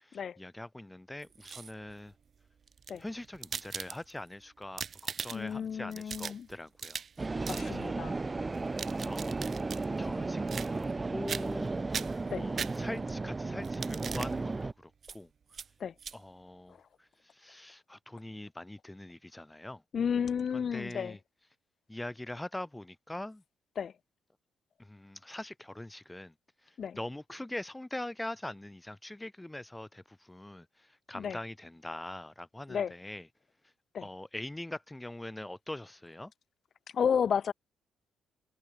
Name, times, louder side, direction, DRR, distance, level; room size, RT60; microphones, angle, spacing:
voice 1, 0.0-2.1 3.0-7.4 7.6-8.2 8.7-9.4 10.0-11.7 12.4-15.3 16.1-17.1 17.3-19.8 20.5-21.2 21.9-23.4 24.8-26.3 26.9-30.7 31.1-33.2 34.0-36.3, left 1 dB, 10° left, 1.4 m, -43 dB
sound 1, 1.2-1.9 2.7-4.3 4.6-5.6 5.9-7.2 7.4-7.7 8.5-9.8 10.5-11.0 11.3-11.6 11.9-13.1 13.6-14.3 15.0-15.2 15.5-15.7 16.0-16.2, right 6 dB, 45° right, 1.2 m, -40 dB
voice 2, 5.3-6.5 7.5-8.2 12.3-12.5 15.8-15.9 16.7-16.8 19.9-21.2 23.8-23.9 26.8-27.0 31.1-31.4 32.7-32.9 33.9-34.1 36.9-37.5, left 7 dB, 50° left, 1.4 m, -32 dB
sound 2, 7.2-14.7, right 3 dB, 25° right, 0.3 m, -34 dB
cardioid pair, 90°, 0 cm